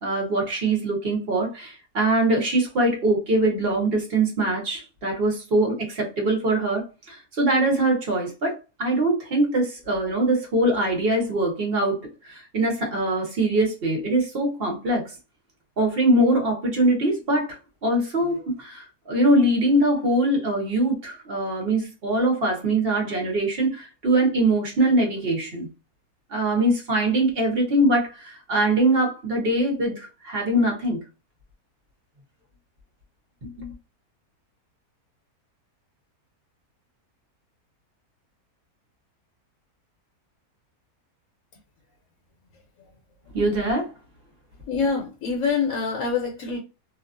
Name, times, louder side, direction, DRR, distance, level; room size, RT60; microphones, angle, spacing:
voice 1, 0.0-15.1 15.8-25.7 26.3-31.0 33.4-33.7 43.3-43.9, right 1 dB, 40° right, 1.2 m, -23 dB
voice 2, 44.7-46.6, left 5 dB, 70° left, 1.0 m, -25 dB
2.8 x 2.4 x 2.5 m
omnidirectional pair, 1.6 m